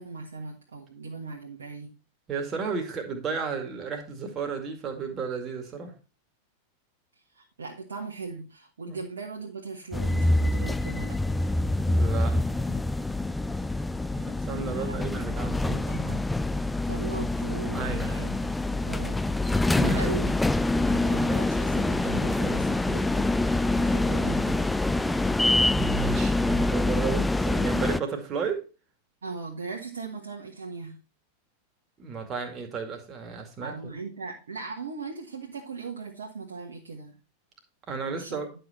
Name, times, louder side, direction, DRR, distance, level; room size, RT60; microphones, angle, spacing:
voice 1, 0.0-1.9 7.3-11.5 14.7-15.1 15.6-16.3 16.9-18.5 18.8-19.2 19.7-20.3 20.8-24.7 29.2-31.0 33.6-37.2 38.1-38.4, right 4 dB, 65° right, 1.5 m, -38 dB
voice 2, 2.3-5.9 8.9-9.0 11.9-12.8 14.1-16.1 17.7-18.3 19.8-20.1 25.8-28.6 32.0-33.9 37.9-38.5, right 5 dB, 25° right, 2.2 m, -33 dB
sound 1, 9.9-28.0, left 2 dB, 5° left, 0.4 m, -26 dB
11.0 x 5.7 x 4.4 m
figure-of-eight pair, 90°, 0 cm